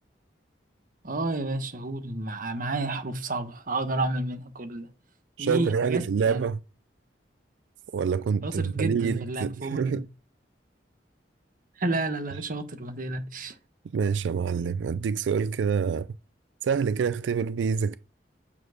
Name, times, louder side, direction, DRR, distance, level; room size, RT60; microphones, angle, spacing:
voice 1, 1.0-4.9 5.4-6.4 8.4-10.0 11.8-13.5, right 2 dB, 50° right, 1.1 m, -30 dB
voice 2, 5.4-6.6 7.9-10.1 13.9-16.1 16.6-18.0, right 6 dB, 90° right, 0.4 m, -26 dB
8.7 x 4.5 x 6.4 m
head